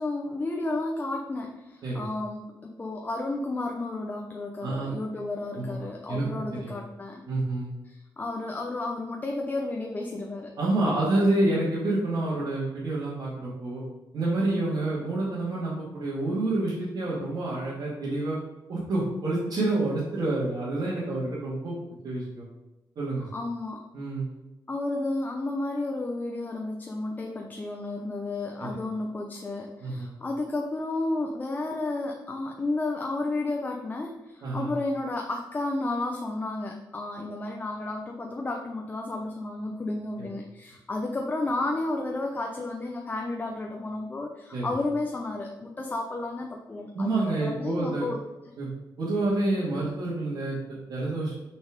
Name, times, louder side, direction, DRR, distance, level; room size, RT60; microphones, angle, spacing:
voice 1, 0.0-7.2 7.8-10.5 10.9-11.6 23.2-23.8 24.7-48.2 48.4-48.5, left 2 dB, 20° left, 1 dB, 0.7 m, -32 dB
voice 2, 4.6-4.9 5.5-5.7 6.1-6.7 7.3-7.7 10.6-13.8 14.1-18.4 18.7-21.8 22.0-22.4 23.0-23.3 23.9-24.3 28.6-28.7 29.8-30.1 34.4-34.7 44.5-44.7 46.9-48.1 48.6-48.7 49.0-51.3, right 2 dB, 60° right, -9 dB, 2.6 m, -28 dB
6.3 x 6.2 x 5.2 m, 1.0 s
wide cardioid pair, 150°, 8 cm